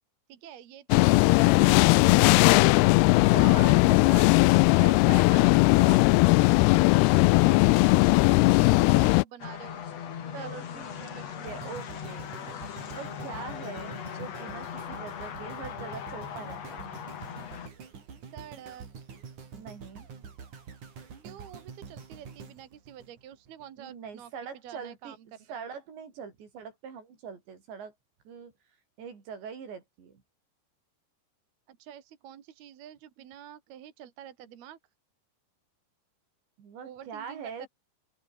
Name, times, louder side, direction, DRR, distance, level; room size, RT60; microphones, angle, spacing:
voice 1, 0.3-2.6 3.0-4.0 7.0-9.8 10.2-11.8 13.3-13.5 18.3-18.9 21.2-24.3 24.6-25.7 31.7-34.8 36.8-37.7, right 10 dB, 65° right, 4.0 m, -48 dB
sound 1, 0.9-9.2, left 23 dB, 80° left, 2.5 m, -19 dB
voice 2, 2.4-2.8 3.3-6.1 7.4-8.0 10.3-12.3 12.9-17.0 19.5-20.1 23.8-25.2 25.5-27.9 28.3-28.5 29.0-30.2 36.6-37.7, right 6 dB, 85° right, 7.1 m, -42 dB
sound 2, 9.4-17.7, left 8 dB, 50° left, 2.5 m, -39 dB
sound 3, 11.5-23.7 24.2-24.3, right 6 dB, 45° right, 5.0 m, -46 dB
open air
omnidirectional pair, 5.0 m